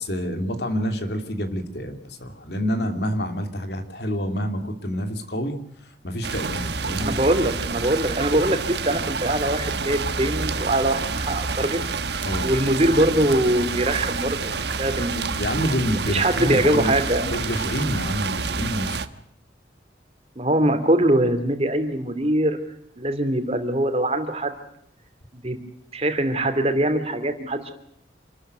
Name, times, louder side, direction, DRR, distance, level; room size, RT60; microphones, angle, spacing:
voice 1, 0.0-5.6 6.0-7.1 12.2-12.5 15.4-17.0 17.3-19.0, equal, 60° left, 6 dB, 2.8 m, -27 dB
sound 1, 6.2-19.1, right 4 dB, 65° right, 1.2 m, -28 dB
voice 2, 6.9-11.8 12.2-15.4 16.1-17.3 20.4-22.6 23.0-24.5 25.4-25.6 25.9-27.7, right 1 dB, 35° right, 7 dB, 2.9 m, -22 dB
27.5 x 13.5 x 7.9 m, 0.75 s
head